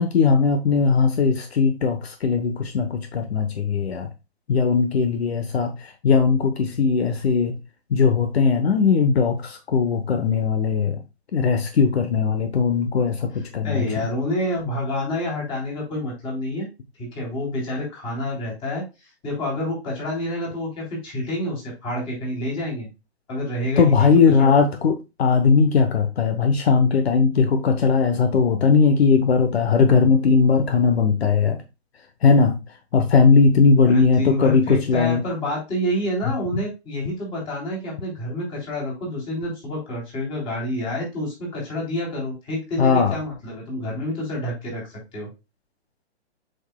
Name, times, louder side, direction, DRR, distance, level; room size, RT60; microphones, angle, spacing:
voice 1, 0.0-4.1 4.5-7.6 7.9-11.0 11.3-13.9 23.8-31.6 32.2-32.6 32.9-35.2 42.8-43.1, left 5 dB, 65° left, 1.1 m, -19 dB
voice 2, 13.3-16.7 17.0-18.8 19.2-22.9 23.3-24.1 24.4-24.5 33.8-44.9 45.1-45.3, left 1 dB, 15° left, 3.3 m, -28 dB
7.9 x 5.4 x 2.2 m
hypercardioid pair, 165°, 33 cm